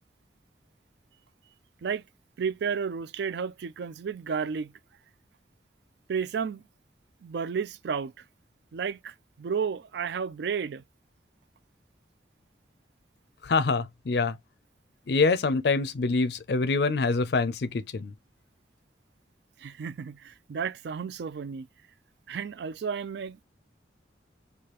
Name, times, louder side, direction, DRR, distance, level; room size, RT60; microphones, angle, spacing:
voice 1, 2.4-4.7 6.1-6.6 7.2-8.2 8.7-10.8 19.6-21.7 22.3-23.4, right 6 dB, 70° right, 0.3 m, -32 dB
voice 2, 13.4-14.4 15.1-18.1, left 4 dB, 65° left, 0.5 m, -25 dB
4.8 x 2.3 x 2.9 m
head